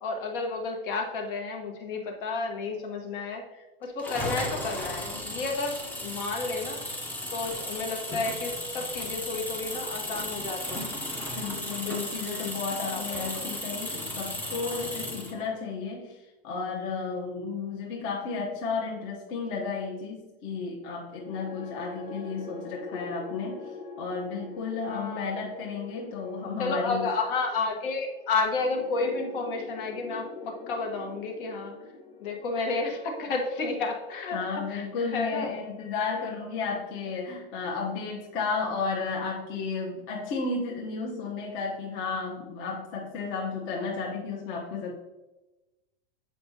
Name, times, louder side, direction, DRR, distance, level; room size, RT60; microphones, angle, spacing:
voice 1, 0.0-6.8 7.3-10.9 11.7-12.5 12.9-13.5 24.8-25.3 26.6-31.7 32.2-34.4 34.7-34.8 35.1-35.5, left 3 dB, 60° left, 2 dB, 1.3 m, -31 dB
sound 1, 4.0-15.4, left 1 dB, 5° left, 0.6 m, -35 dB
voice 2, 11.3-27.1 34.3-44.9, left 4 dB, 40° left, -2 dB, 1.0 m, -33 dB
sound 2, 21.1-37.4, left 3 dB, 80° left, 1.2 m, -44 dB
7.5 x 4.8 x 2.7 m, 1.0 s
supercardioid pair, 140°, 31 cm